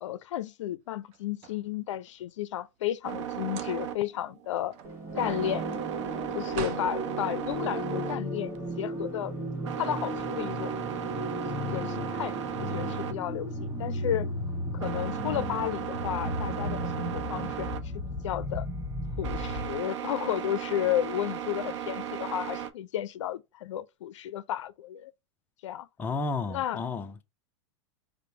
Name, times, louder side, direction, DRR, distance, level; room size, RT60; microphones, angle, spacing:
voice 1, 0.0-4.7 5.1-5.7 6.3-9.3 9.8-10.8 11.7-14.3 14.7-17.8 18.2-18.7 19.2-25.1 25.6-25.9 26.5-26.8, left 11 dB, 80° left, 0.4 m, -33 dB
sound 1, 1.0-2.2 3.4-4.1 4.5-7.0, right 7 dB, 40° right, 0.6 m, -43 dB
sound 2, 3.0-22.7, right 10 dB, 80° right, 0.6 m, -37 dB
sound 3, 4.8-19.8, equal, 15° right, 1.2 m, -35 dB
voice 2, 26.0-27.2, left 3 dB, 10° left, 0.4 m, -32 dB
5.0 x 2.1 x 4.3 m
supercardioid pair, 135°, 15 cm